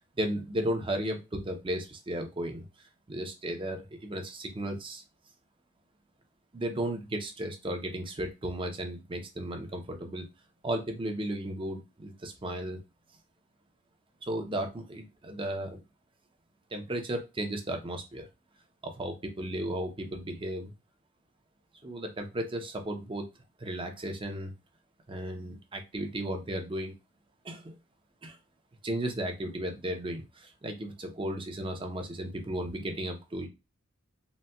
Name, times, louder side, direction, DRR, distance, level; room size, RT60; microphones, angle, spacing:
voice 1, 0.2-2.6 3.1-5.0 6.5-10.3 10.6-12.8 14.2-15.8 16.7-18.3 18.8-20.7 21.8-23.2 23.6-24.5 25.1-26.9 27.4-27.8 28.2-28.4 28.8-33.5, right 1 dB, 25° right, 5 dB, 0.6 m, -34 dB
4.0 x 2.2 x 2.2 m, 0.25 s
head